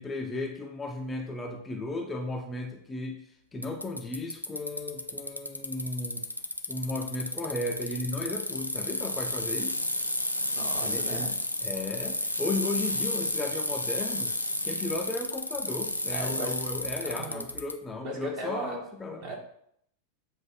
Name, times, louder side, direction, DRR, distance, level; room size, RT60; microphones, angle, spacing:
voice 1, 0.0-6.3 6.7-9.8 10.8-11.3 11.6-14.3 14.6-19.2, left 2 dB, 15° left, 2 dB, 0.7 m, -35 dB
Bicycle, 3.6-17.7, left 1 dB, 90° left, 0.4 m, -32 dB
voice 2, 10.6-11.3 16.1-16.5 17.0-17.4 18.0-18.7 19.2-19.4, right 2 dB, 45° right, -1 dB, 1.8 m, -37 dB
7.6 x 2.6 x 5.8 m, 0.70 s
figure-of-eight pair, 90°, 0 cm